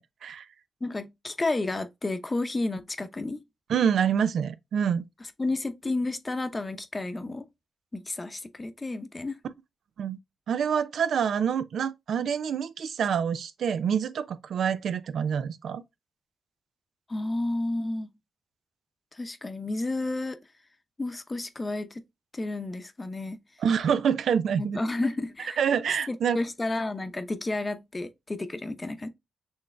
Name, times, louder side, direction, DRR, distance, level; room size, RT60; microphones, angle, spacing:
voice 1, 0.8-3.4 5.4-7.5 7.9-9.4 17.1-18.1 19.1-20.4 21.0-22.0 22.3-23.4 24.6-25.6 26.1-29.1, left 2 dB, 25° left, 0.7 m, -31 dB
voice 2, 3.7-5.0 10.0-10.2 10.5-15.8 23.6-24.8 25.6-26.4, right 7 dB, 75° right, 0.3 m, -26 dB
6.2 x 3.2 x 2.2 m
cardioid pair, 65°, 0 cm